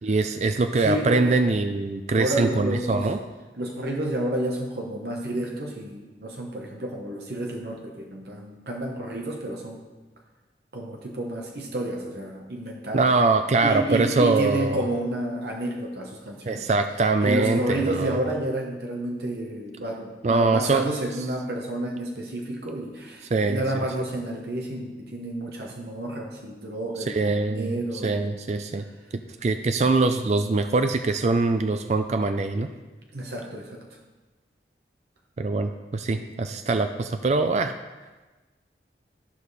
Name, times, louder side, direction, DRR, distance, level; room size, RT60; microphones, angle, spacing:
voice 1, 0.0-3.2 12.9-14.8 16.4-18.2 20.2-20.8 23.3-23.6 27.1-27.7 28.0-28.8 29.4-32.7 35.4-37.8, right 3 dB, 40° right, 8 dB, 0.4 m, -23 dB
voice 2, 0.8-1.4 2.1-3.1 3.6-9.8 10.7-13.1 13.6-16.7 17.2-28.2 33.1-33.8, right 1 dB, 65° right, 0 dB, 1.0 m, -30 dB
12.5 x 4.9 x 4.1 m, 1.2 s
head